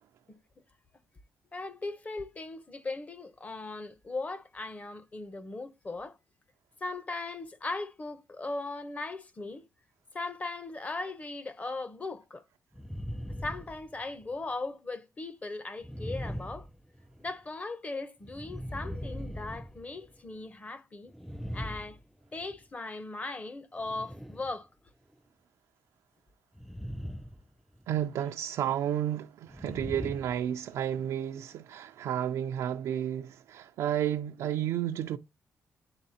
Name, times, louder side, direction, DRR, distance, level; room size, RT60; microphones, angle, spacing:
voice 1, 1.5-6.2 6.8-9.6 10.1-12.4 13.4-16.7 17.2-21.1 21.5-22.0 22.3-24.7, left 3 dB, 30° left, 0.8 m, -38 dB
sound 1, 12.7-14.4 15.8-17.3 18.2-20.4 21.1-22.6 23.8-24.5 26.6-27.5 27.7-28.1 29.5-31.0, equal, ahead, 0.3 m, -40 dB
voice 2, 27.9-35.2, right 10 dB, 90° right, 0.4 m, -32 dB
9.9 x 3.5 x 2.7 m
cardioid pair, 95°, 5 cm